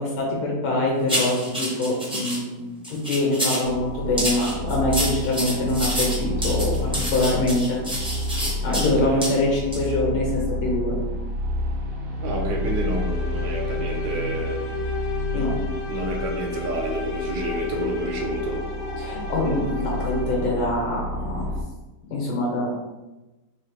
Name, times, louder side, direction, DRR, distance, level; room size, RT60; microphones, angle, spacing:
voice 1, 0.0-7.8 8.6-11.0 15.3-15.5 19.0-21.5 22.1-22.7, left 2 dB, 85° left, -3 dB, 2.0 m, -24 dB
sound 1, 1.1-2.4 2.8-3.7 4.2-8.9 9.2-9.3 9.7-9.9, right 1 dB, 5° right, 0.4 m, -28 dB
sound 2, 3.6-21.6, left 1 dB, 85° right, 0.7 m, -30 dB
voice 2, 8.7-9.3 12.2-14.6 15.9-18.6, right 2 dB, 65° right, 0 dB, 1.2 m, -29 dB
sound 3, 12.3-20.7, left 5 dB, 70° left, 0.9 m, -34 dB
4.1 x 2.8 x 3.2 m, 1.1 s
omnidirectional pair, 2.1 m